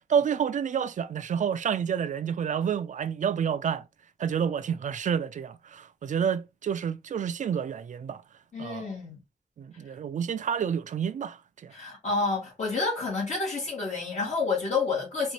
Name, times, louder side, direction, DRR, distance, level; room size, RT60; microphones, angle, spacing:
voice 1, 0.1-3.8 4.2-8.2 8.6-8.9 9.6-11.7, right 7 dB, 85° right, 0.4 m, -29 dB
voice 2, 8.5-9.2 11.7-15.3, left 4 dB, 65° left, 1.9 m, -29 dB
4.3 x 2.4 x 3.0 m
wide cardioid pair, 115°, 12 cm